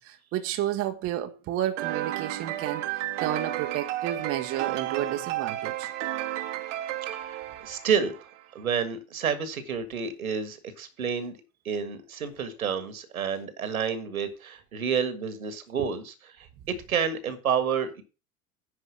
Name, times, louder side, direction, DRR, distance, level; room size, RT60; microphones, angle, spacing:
voice 1, 0.0-2.9 3.2-5.9 15.8-15.9, right 11 dB, 30° right, 0.9 m, -31 dB
sound 1, 1.8-8.4, right 14 dB, 55° right, 1.1 m, -32 dB
voice 2, 7.1-8.2 8.5-11.4 11.6-18.0, right 7 dB, 75° right, 1.7 m, -29 dB
10.0 x 4.8 x 6.2 m
figure-of-eight pair, 80°, 43 cm